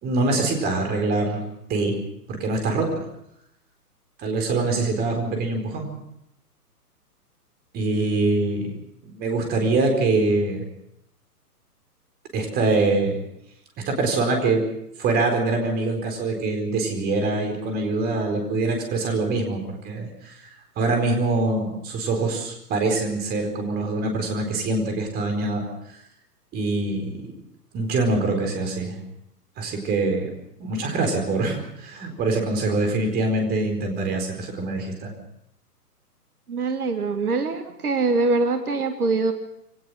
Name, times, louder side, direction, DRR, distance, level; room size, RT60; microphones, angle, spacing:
voice 1, 0.0-1.4 1.7-1.9 2.3-3.1 4.2-5.9 7.7-8.7 9.0-10.6 12.3-13.2 13.9-14.6 15.0-20.3 20.8-25.6 26.5-27.3 27.7-29.0 29.6-30.3 30.6-35.1, right 3 dB, 20° right, 4 dB, 4.5 m, -24 dB
voice 2, 36.5-39.3, right 3 dB, 65° right, 8 dB, 1.8 m, -23 dB
23.5 x 18.5 x 6.3 m, 0.78 s
figure-of-eight pair, 125°, 47 cm